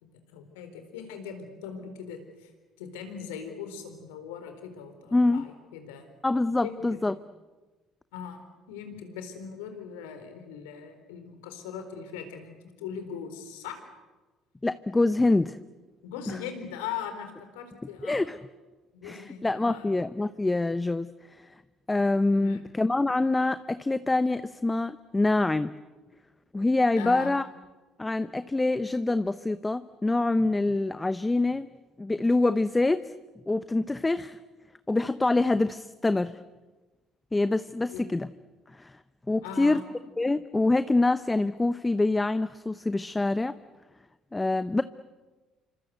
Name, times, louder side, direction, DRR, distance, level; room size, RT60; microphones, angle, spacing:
voice 1, 0.0-2.5 2.8-6.1 6.6-7.0 8.1-13.8 16.0-18.3 18.9-20.0 22.4-22.7 27.0-27.3 37.9-38.0 39.4-39.8, left 7 dB, 80° left, 7 dB, 4.2 m, -40 dB
voice 2, 5.1-5.4 6.2-7.1 14.6-15.6 16.3-16.4 18.0-18.4 19.0-21.1 21.4-21.5 21.9-25.7 26.5-27.4 28.0-31.7 32.0-33.0 33.5-34.4 34.9-36.4 37.3-38.3 38.8-38.9 39.3-39.8 40.2-43.6 44.3-44.8, left 2 dB, 15° left, 13 dB, 0.9 m, -25 dB
27.5 x 25.5 x 8.1 m, 1.2 s
hypercardioid pair, 60°, 0 cm